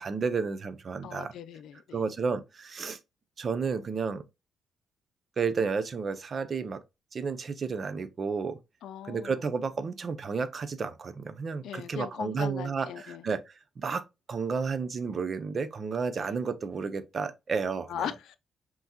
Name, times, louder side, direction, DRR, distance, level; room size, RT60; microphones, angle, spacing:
voice 1, 0.0-1.3 1.9-3.0 3.4-4.2 5.4-6.8 7.1-8.6 9.0-13.4 13.8-18.1, right 5 dB, 35° right, 0.5 m, -32 dB
voice 2, 1.0-2.0 8.8-9.4 11.6-13.3 16.2-16.3 17.9-18.4, left 9 dB, 85° left, 0.5 m, -39 dB
5.6 x 2.9 x 2.8 m
cardioid pair, 145°, 0 cm